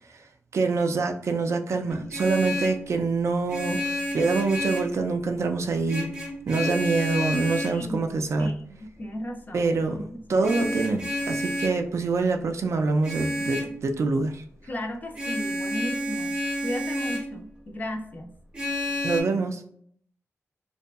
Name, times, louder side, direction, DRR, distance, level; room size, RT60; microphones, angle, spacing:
voice 1, 0.5-3.8 4.1-6.1 6.5-8.5 9.5-10.0 10.3-14.4 19.0-19.6, right 3 dB, 65° right, 5 dB, 0.3 m, -25 dB
Vehicle horn car horn honking, 1.9-2.9 3.5-5.0 5.9-7.8 10.4-11.8 13.0-13.8 15.1-17.3 18.5-19.2, left 1 dB, 20° right, 0.6 m, -30 dB
voice 2, 7.6-10.5 14.7-16.4 16.6-18.3, equal, 35° left, 3 dB, 0.4 m, -35 dB
2.6 x 2.3 x 2.3 m, 0.64 s
wide cardioid pair, 160°, 5 cm